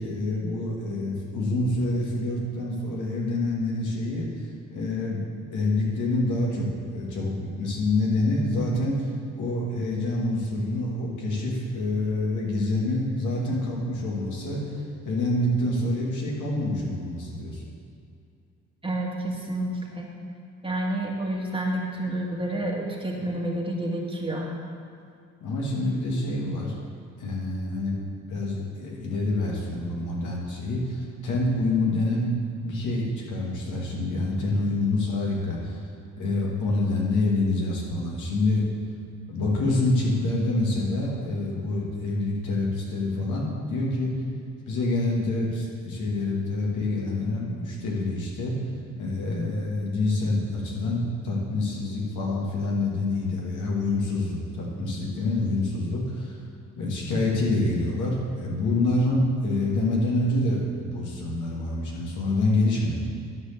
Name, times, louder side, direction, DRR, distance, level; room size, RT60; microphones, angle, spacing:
voice 1, 0.0-4.3 4.7-5.2 5.5-9.1 9.4-14.8 15.0-17.6 25.4-26.7 27.2-28.0 28.3-32.3 32.6-38.6 39.3-44.1 44.7-48.6 49.0-56.4 56.8-63.0, left 2 dB, 80° left, -3 dB, 2.3 m, -27 dB
voice 2, 18.8-20.1 20.6-24.5, right 1 dB, 15° right, -2 dB, 1.7 m, -29 dB
11.0 x 4.9 x 6.8 m, 2.4 s
cardioid pair, 90°, 30 cm